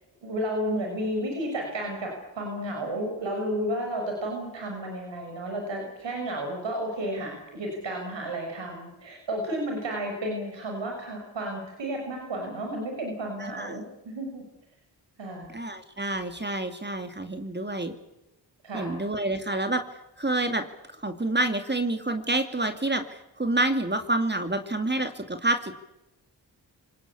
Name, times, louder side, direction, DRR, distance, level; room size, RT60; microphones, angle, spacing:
voice 1, 0.2-14.4 15.2-15.5 18.6-18.9, right 1 dB, 85° right, 2 dB, 6.2 m, -32 dB
voice 2, 13.4-13.8 15.5-17.9 18.7-19.8 20.2-20.7 21.0-25.7, right 2 dB, 25° right, 7 dB, 2.4 m, -28 dB
26.5 x 19.0 x 8.5 m, 0.92 s
cardioid pair, 50°, 43 cm